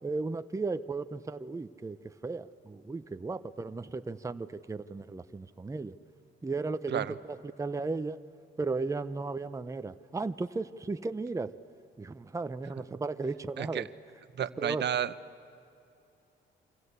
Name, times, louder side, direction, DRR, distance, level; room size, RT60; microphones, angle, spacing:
voice 1, 0.0-5.9 6.4-8.2 8.6-11.6 12.0-13.9 14.6-14.9, right 3 dB, 15° right, 10 dB, 0.7 m, -35 dB
voice 2, 13.6-13.9 14.4-15.1, right 10 dB, 60° right, 13 dB, 0.9 m, -31 dB
28.0 x 25.5 x 8.3 m, 2.7 s
cardioid pair, 90°, 20 cm